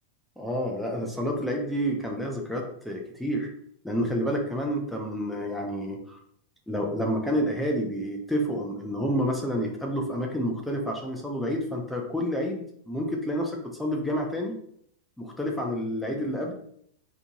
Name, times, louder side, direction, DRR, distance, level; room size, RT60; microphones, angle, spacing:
voice 1, 0.4-3.5 3.8-6.2 6.7-14.6 15.2-16.5, equal, ahead, 0 dB, 0.9 m, -29 dB
4.8 x 3.2 x 2.4 m, 0.67 s
figure-of-eight pair, 90°, 0 cm